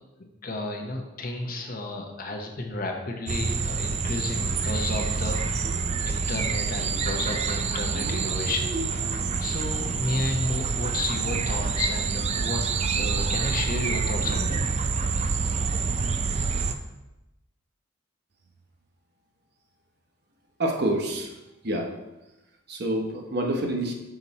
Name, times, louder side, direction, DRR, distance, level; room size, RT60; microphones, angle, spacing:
voice 1, 0.2-12.6 12.9-14.6, left 2 dB, 45° left, 3 dB, 0.7 m, -32 dB
sound 1, 3.3-16.7, right 4 dB, 35° right, 0.3 m, -27 dB
voice 2, 20.6-21.3 21.6-21.9 22.7-23.9, right 1 dB, 55° right, 2 dB, 0.9 m, -27 dB
6.0 x 4.1 x 4.1 m, 1.0 s
head